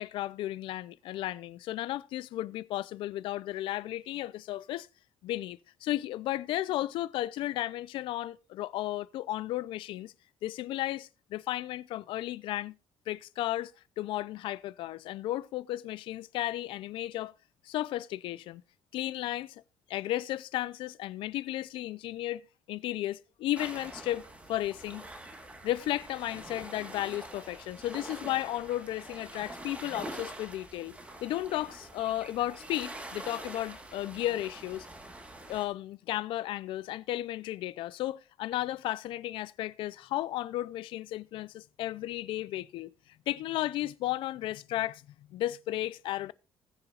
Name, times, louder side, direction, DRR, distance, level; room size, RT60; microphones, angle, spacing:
voice 1, 0.0-4.9 5.2-10.1 10.4-12.7 13.1-13.7 14.0-17.3 17.6-18.6 18.9-19.6 19.9-22.4 22.7-24.2 24.5-25.1 25.6-34.9 35.5-42.9 43.3-45.0 45.3-46.3, left 14 dB, 75° left, 0.5 m, -34 dB
sound 1, 23.5-35.7, right 1 dB, 15° right, 1.4 m, -45 dB
20.0 x 7.0 x 2.4 m
cardioid pair, 180°, 9 cm